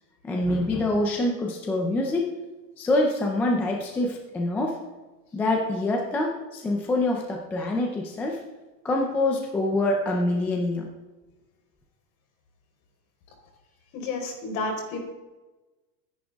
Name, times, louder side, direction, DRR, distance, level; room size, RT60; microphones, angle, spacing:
voice 1, 0.2-2.3 2.8-4.8 5.3-8.4 8.8-10.9, left 2 dB, 5° left, 1 dB, 0.4 m, -25 dB
voice 2, 13.9-15.0, left 3 dB, 55° left, 1 dB, 4.6 m, -30 dB
23.0 x 10.5 x 3.5 m, 1.2 s
supercardioid pair, 160°, 49 cm